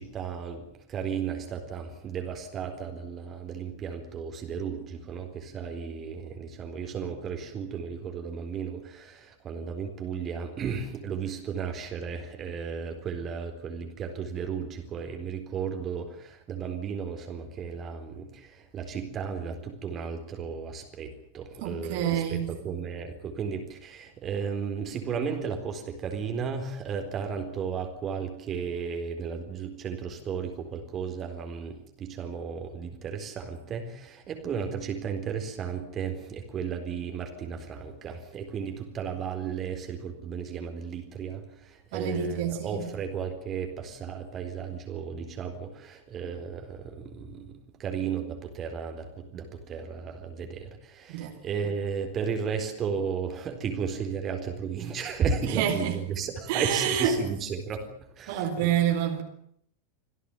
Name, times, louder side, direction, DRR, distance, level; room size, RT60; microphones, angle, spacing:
voice 1, 0.0-57.9 58.2-58.7, right 6 dB, 25° right, 4.1 m, -34 dB
voice 2, 21.6-22.5 41.9-42.9 51.1-51.4 55.5-56.0 56.5-57.1 58.3-59.2, right 9 dB, 50° right, 4.0 m, -27 dB
27.0 x 16.5 x 9.2 m
figure-of-eight pair, 90°, 0 cm